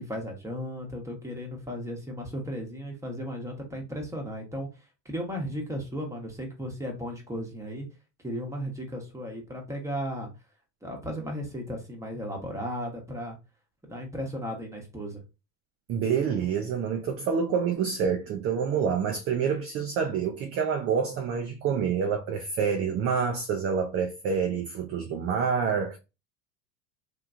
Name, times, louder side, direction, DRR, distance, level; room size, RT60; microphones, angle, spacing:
voice 1, 0.0-4.7 5.0-7.9 8.2-10.3 10.8-13.4 13.9-15.2, equal, 5° right, 1.0 m, -35 dB
voice 2, 15.9-26.0, right 6 dB, 30° right, 0.4 m, -27 dB
2.9 x 2.4 x 2.4 m
hypercardioid pair, 100°, 49 cm